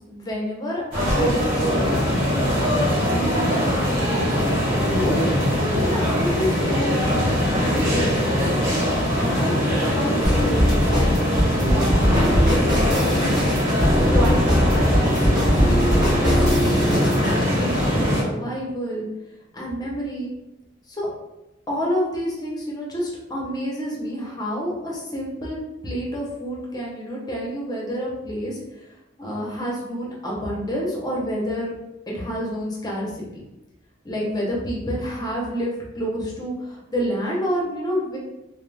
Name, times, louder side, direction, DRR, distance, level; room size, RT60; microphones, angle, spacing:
voice 1, 0.1-2.9 3.2-5.2 5.8-8.7 9.1-11.2 11.5-13.5 14.1-19.0 19.5-20.3 20.9-21.1 21.7-25.6 25.8-28.6 29.2-31.7 32.1-33.4 34.0-38.2, equal, 20° left, -4 dB, 0.7 m, -29 dB
sound 1, 0.9-18.2, equal, 45° right, 1.3 m, -22 dB
sound 2, 10.2-17.4, equal, 25° right, 0.8 m, -21 dB
2.3 x 2.0 x 3.2 m, 0.95 s
head